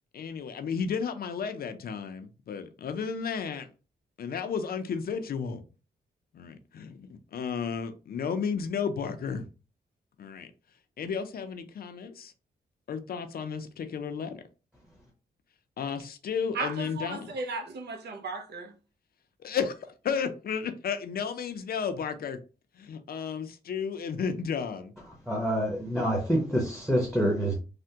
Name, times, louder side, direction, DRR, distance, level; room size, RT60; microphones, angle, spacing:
voice 1, 0.1-3.7 4.2-5.6 6.3-9.5 10.2-10.5 11.0-12.3 12.9-14.4 15.8-17.3 19.4-19.8 20.0-22.4 22.8-24.9, left 6 dB, 60° left, 0.5 m, -33 dB
voice 2, 16.5-18.8, right 3 dB, 75° right, 0.6 m, -35 dB
voice 3, 25.3-27.6, equal, 5° right, 0.8 m, -27 dB
3.3 x 2.1 x 2.7 m
wide cardioid pair, 110°, 17 cm